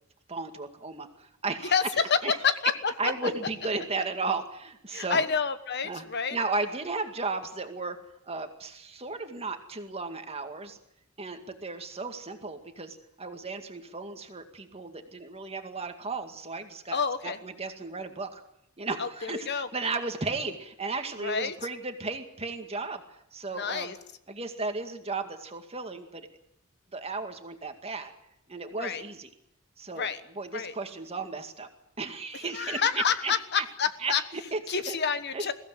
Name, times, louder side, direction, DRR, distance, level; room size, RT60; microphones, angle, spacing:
voice 1, 0.3-1.8 2.2-2.3 3.0-5.2 5.8-6.0 6.3-8.0 8.3-10.8 11.2-17.0 17.2-18.4 18.8-23.9 24.3-26.3 26.9-28.1 28.5-29.3 29.8-30.1 30.4-31.7 32.0-33.7 34.0-34.6 34.9-35.0 35.3-35.5, right 3 dB, 30° right, 6 dB, 2.2 m, -35 dB
voice 2, 2.1-3.1 4.9-6.4 16.9-17.4 19.0-19.7 21.2-21.6 23.5-24.0 28.8-29.0 29.9-30.2 30.5-30.7 32.4-34.2 34.7-35.5, left 6 dB, 50° left, 11 dB, 1.2 m, -28 dB
22.0 x 16.0 x 9.5 m, 0.78 s
head